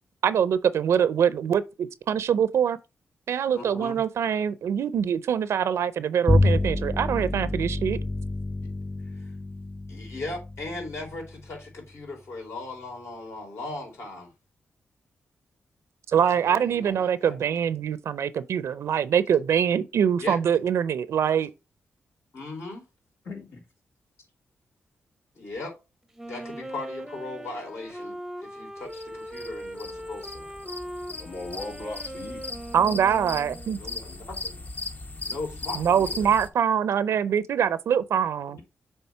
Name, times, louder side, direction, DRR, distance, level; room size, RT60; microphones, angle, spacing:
voice 1, 0.2-2.8 3.3-8.0 16.1-21.5 32.7-33.8 35.7-38.6, right 8 dB, 75° right, 0.5 m, -24 dB
voice 2, 3.5-4.0 9.2-9.3 9.9-14.3 16.4-17.4 20.2-20.4 22.3-22.9 25.4-25.7 26.2-28.2 28.4-30.5 33.8-34.6 35.3-36.3, left 2 dB, 65° left, 3.7 m, -38 dB
Bowed string instrument, 6.3-11.9, left 2 dB, 15° left, 0.3 m, -28 dB
voice 3, 23.2-23.6 31.1-32.4 38.5-38.6, left 2 dB, 85° left, 2.3 m, -38 dB
Wind instrument woodwind instrument, 26.2-33.8, right 1 dB, 5° right, 0.7 m, -40 dB
sound 1, 28.9-36.5, left 3 dB, 40° left, 0.9 m, -38 dB
7.2 x 3.3 x 4.5 m
cardioid pair, 80°, 5 cm